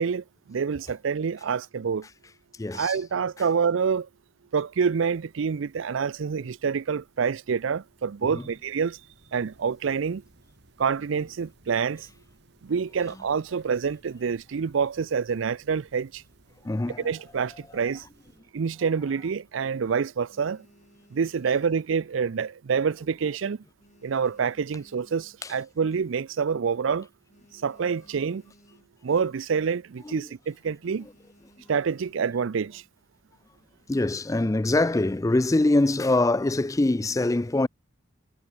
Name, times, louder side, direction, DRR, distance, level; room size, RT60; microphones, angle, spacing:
voice 1, 0.0-2.1 2.7-4.1 4.5-9.0 9.3-10.2 10.8-12.1 12.6-16.2 17.0-18.0 18.5-20.7 21.1-23.6 24.0-27.1 27.5-28.4 29.0-31.1 31.7-32.8, right 6 dB, 75° right, 0.5 m, -27 dB
voice 2, 2.6-3.0 8.3-8.4 16.6-17.1 25.4-25.5 30.0-30.3 33.9-37.7, left 2 dB, 15° left, 0.4 m, -24 dB
sound 1, 4.9-18.4, right 1 dB, 55° right, 4.6 m, -60 dB
sound 2, 20.3-22.6 22.9-23.3 23.6-25.8 26.3-26.4 26.5-26.7 27.0-29.2 29.5-29.8 30.1-30.3 30.8-32.6 33.3-33.9, left 1 dB, 35° left, 2.7 m, -60 dB
head